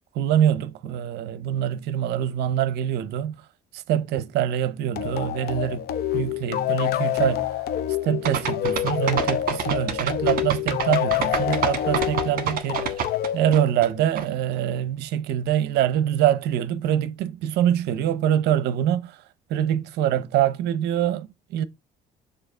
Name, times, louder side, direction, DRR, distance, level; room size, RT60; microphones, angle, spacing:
voice 1, 0.1-3.4 3.7-5.9 6.1-7.5 8.0-13.0 13.3-19.2 19.5-21.6, right 10 dB, 80° right, 0.7 m, -24 dB
sound 1, 5.0-14.2, left 11 dB, 70° left, 0.8 m, -27 dB
sound 2, 8.2-13.9 14.1-14.2, right 7 dB, 60° right, 1.5 m, -27 dB
6.7 x 2.8 x 5.4 m
cardioid pair, 110°, 17 cm